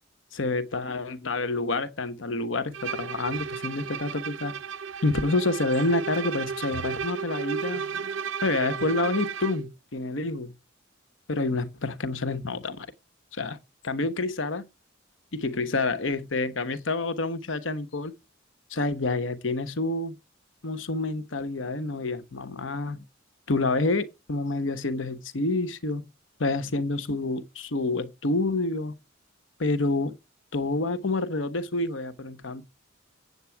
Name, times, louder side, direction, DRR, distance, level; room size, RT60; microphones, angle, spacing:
voice 1, 0.4-4.6 5.0-7.8 8.4-10.5 11.3-12.9 13.3-13.6 13.8-14.6 15.3-18.1 18.7-20.1 20.6-23.0 23.5-26.1 26.4-28.9 29.6-30.2 30.5-32.6, left 2 dB, 85° left, 1.0 m, -28 dB
Bowed string instrument, 2.7-9.7, right 6 dB, 85° right, 0.8 m, -34 dB
8.2 x 8.0 x 4.6 m
head